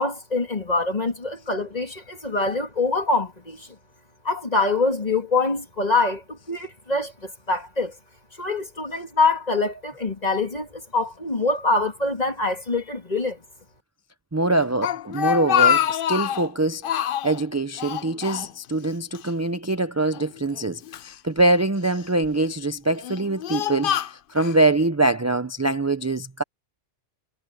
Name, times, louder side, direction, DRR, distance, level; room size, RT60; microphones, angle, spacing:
voice 1, 0.0-3.7 4.2-7.9 8.4-13.4, left 3 dB, 35° left, 2.6 m, -24 dB
voice 2, 14.3-26.4, right 2 dB, 20° right, 0.5 m, -24 dB
Speech, 14.6-16.5 16.8-17.4 17.8-18.9 19.1-19.3 20.1-21.1 21.8-22.3 22.9-24.6, left 10 dB, 60° left, 0.6 m, -25 dB
omnidirectional pair, 1.2 m